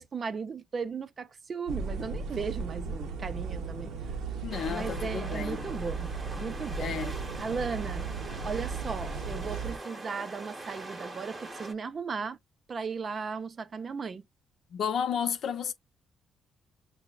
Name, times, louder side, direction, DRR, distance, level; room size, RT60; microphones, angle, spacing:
voice 1, 0.0-3.9 4.7-6.1 6.4-7.0 7.4-8.0 8.4-12.4 12.7-14.2, right 5 dB, 45° right, 0.4 m, -36 dB
sound 1, 1.7-9.8, right 4 dB, 90° right, 0.6 m, -36 dB
voice 2, 4.4-5.7 6.8-7.2 14.7-15.7, left 7 dB, 65° left, 0.5 m, -32 dB
sound 2, 4.5-11.7, right 2 dB, 25° right, 0.8 m, -43 dB
5.7 x 2.0 x 2.3 m
cardioid pair, 90°, 0 cm